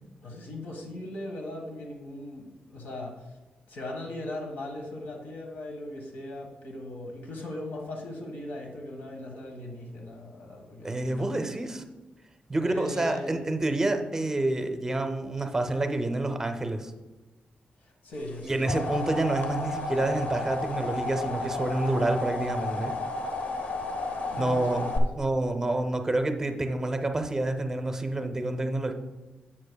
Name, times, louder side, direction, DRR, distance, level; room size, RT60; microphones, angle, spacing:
voice 1, 0.2-3.3 3.7-11.4 12.6-13.4 17.8-18.9 24.3-25.1, left 1 dB, 80° left, 1 dB, 1.5 m, -39 dB
voice 2, 10.8-11.8 12.5-16.9 18.4-22.9 24.4-24.9 25.2-28.9, right 2 dB, 15° right, 6 dB, 0.6 m, -28 dB
sound 1, 18.3-25.0, left 3 dB, 55° left, 0.8 m, -32 dB
11.5 x 7.4 x 2.3 m, 1.2 s
wide cardioid pair, 175°, 3 cm